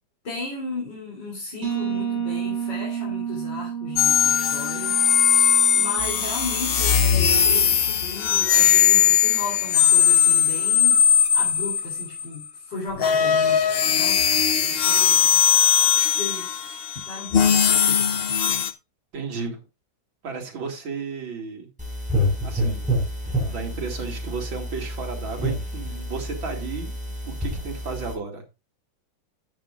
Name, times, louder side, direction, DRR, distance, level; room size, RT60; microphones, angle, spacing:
voice 1, 0.2-5.0 5.7-11.1 11.3-15.5 16.2-16.5 16.9-18.7, left 3 dB, 65° left, 4.1 m, -35 dB
sound 1, 1.6-7.2, right 8 dB, 55° right, 4.8 m, -31 dB
sound 2, 4.0-12.3 13.0-18.7, left 8 dB, 85° left, 0.5 m, -19 dB
voice 2, 19.1-19.6 20.2-21.7 22.4-22.9 23.4-28.4, right 5 dB, 85° right, 3.2 m, -33 dB
sound 3, 21.8-28.1, equal, 5° right, 4.9 m, -28 dB
12.0 x 8.9 x 2.5 m
omnidirectional pair, 2.1 m